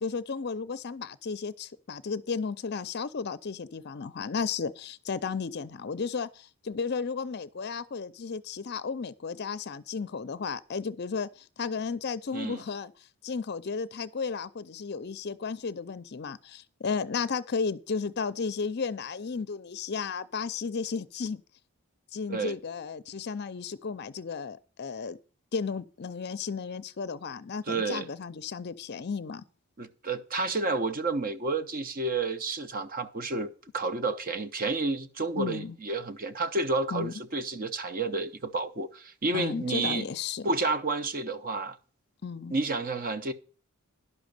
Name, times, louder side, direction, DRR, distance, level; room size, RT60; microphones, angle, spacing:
voice 1, 0.0-12.9 13.2-21.4 22.1-25.2 25.5-29.4 35.4-35.8 36.9-37.1 39.3-40.5 42.2-42.6, left 5 dB, 50° left, 0.5 m, -34 dB
voice 2, 12.3-12.6 22.3-22.5 27.7-28.1 29.8-40.1 40.4-41.8 42.5-43.3, right 3 dB, 40° right, 0.7 m, -30 dB
11.0 x 6.2 x 6.6 m
head